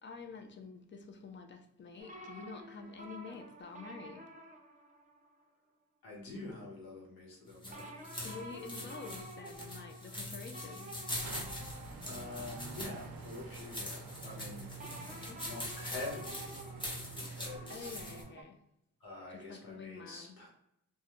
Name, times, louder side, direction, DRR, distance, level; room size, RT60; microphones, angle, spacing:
voice 1, 0.0-4.3 8.2-11.1 14.8-15.4 17.7-18.6 19.3-20.4, left 5 dB, 35° left, 4 dB, 0.4 m, -48 dB
sound 1, 2.0-5.4 7.7-13.5 14.8-18.4, right 1 dB, 25° right, 0.5 m, -51 dB
voice 2, 6.0-8.2 8.8-9.0 12.0-14.7 15.4-16.5 17.1-17.9 19.0-20.5, left 2 dB, 85° left, -2 dB, 1.0 m, -46 dB
sound 2, 7.5-18.2, left 1 dB, 15° left, 0.8 m, -44 dB
sound 3, 11.2-18.3, right 5 dB, 80° right, 0.5 m, -48 dB
2.3 x 2.1 x 2.9 m, 0.80 s
cardioid pair, 70°, 35 cm